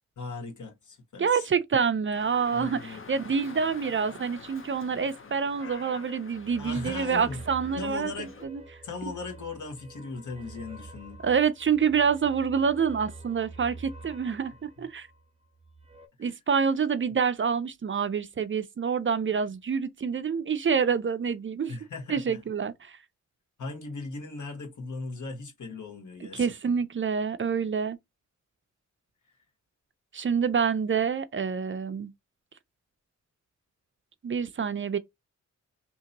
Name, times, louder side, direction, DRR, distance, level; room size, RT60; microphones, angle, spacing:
voice 1, 0.2-1.4 2.5-3.1 6.6-7.4 7.8-8.3 8.8-11.2 16.2-16.3 21.7-22.4 23.6-26.5, left 3 dB, 75° left, 1.3 m, -38 dB
voice 2, 1.2-8.1 8.4-8.6 11.2-15.1 16.2-21.7 22.1-23.0 26.3-28.0 30.1-32.1 34.2-35.0, right 6 dB, 45° right, 0.4 m, -27 dB
Dog, 2.1-8.5, left 4 dB, 45° left, 0.7 m, -47 dB
sound 1, 6.3-16.1, right 3 dB, 20° right, 0.8 m, -47 dB
2.9 x 2.7 x 3.9 m
wide cardioid pair, 105°, 30 cm